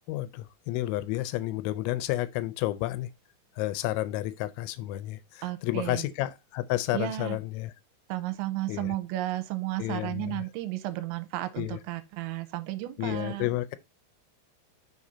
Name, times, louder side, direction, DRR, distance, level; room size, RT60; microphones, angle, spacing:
voice 1, 0.1-3.1 3.6-7.7 8.7-9.0 9.8-10.4 11.6-11.8 13.0-13.8, left 16 dB, 85° left, 2.9 m, -31 dB
voice 2, 5.4-6.0 6.9-7.4 8.1-13.5, right 16 dB, 85° right, 3.0 m, -33 dB
6.5 x 4.2 x 4.9 m
omnidirectional pair, 5.3 m